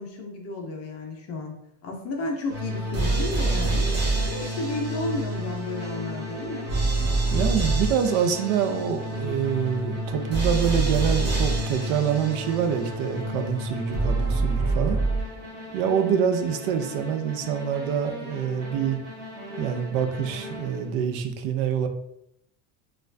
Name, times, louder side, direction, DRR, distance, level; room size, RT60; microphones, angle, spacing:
voice 1, 0.0-1.5 1.8-3.9 4.3-6.7, left 2 dB, 35° left, 1 dB, 0.5 m, -32 dB
sound 1, 2.5-21.0, right 2 dB, 20° right, 1.0 m, -28 dB
voice 2, 7.3-15.0 15.7-19.0 19.6-21.9, right 8 dB, 65° right, 7 dB, 0.6 m, -26 dB
4.2 x 2.3 x 2.5 m, 0.78 s
cardioid pair, 145°, 47 cm